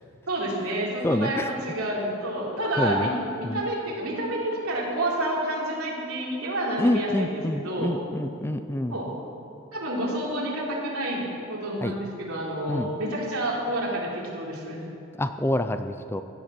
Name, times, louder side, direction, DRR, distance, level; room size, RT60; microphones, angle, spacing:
voice 1, 0.3-7.9 8.9-9.1 9.7-14.8, right 1 dB, 80° right, -4 dB, 3.6 m, -29 dB
voice 2, 1.0-1.5 2.8-3.1 3.4-3.6 6.8-9.0 11.8-11.9 12.7-12.9 15.2-16.2, left 1 dB, 10° left, 9 dB, 0.4 m, -26 dB
16.0 x 10.5 x 6.1 m, 3.0 s
head